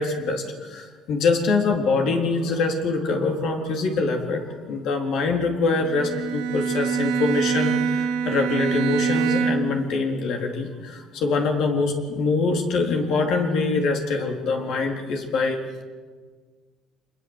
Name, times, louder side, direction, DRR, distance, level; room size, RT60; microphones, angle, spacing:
voice 1, 0.0-15.8, left 3 dB, 65° left, 3 dB, 3.9 m, -24 dB
Bowed string instrument, 5.8-9.9, right 6 dB, 85° right, 3.0 m, -25 dB
26.0 x 21.0 x 8.2 m, 1.5 s
cardioid pair, 135°, 0 cm